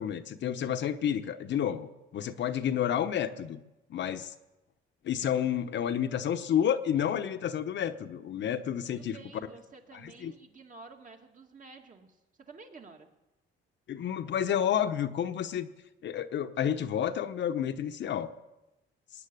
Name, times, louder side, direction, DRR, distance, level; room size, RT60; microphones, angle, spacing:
voice 1, 0.0-3.6 3.9-4.3 5.0-9.2 10.0-10.3 13.9-15.7 16.0-18.3, left 9 dB, 65° left, 9 dB, 1.0 m, -30 dB
voice 2, 9.0-13.1, right 4 dB, 40° right, 3 dB, 2.3 m, -51 dB
19.5 x 7.2 x 9.9 m, 0.99 s
cardioid pair, 90°, 20 cm